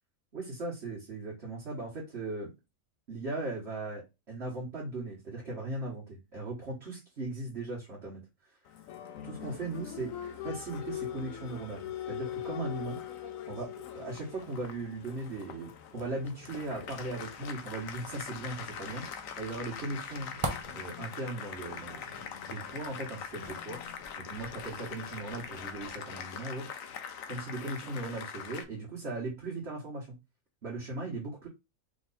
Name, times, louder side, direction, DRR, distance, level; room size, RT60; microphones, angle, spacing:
voice 1, 0.3-2.5 3.1-8.6 9.2-10.1 10.4-13.0 13.5-20.4 20.7-22.2 22.5-23.8 24.2-26.7 27.3-30.2 30.6-31.5, right 2 dB, 50° right, -5 dB, 1.6 m, -38 dB
Applause, 8.7-28.6, left 9 dB, 75° left, 1.1 m, -42 dB
sound 1, 16.7-26.0, right 2 dB, 30° right, 0.6 m, -45 dB
3.8 x 3.1 x 4.1 m, 0.24 s
omnidirectional pair, 1.5 m